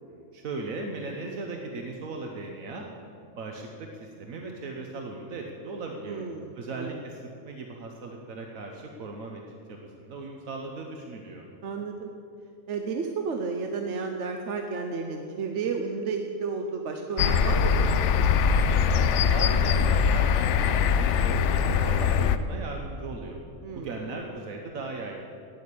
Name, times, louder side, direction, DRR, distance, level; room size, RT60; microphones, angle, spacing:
voice 1, 0.1-2.8 3.4-6.2 6.5-11.4 18.7-19.0 19.3-23.4 23.7-25.2, right 3 dB, 80° right, 2 dB, 1.3 m, -38 dB
voice 2, 6.0-7.0 11.6-12.1 12.7-18.1 23.6-23.9, right 4 dB, 60° right, 4 dB, 1.0 m, -32 dB
sound 1, 17.2-22.4, left 6 dB, 70° left, 0.8 m, -22 dB
9.4 x 9.2 x 8.3 m, 2.5 s
omnidirectional pair, 1.4 m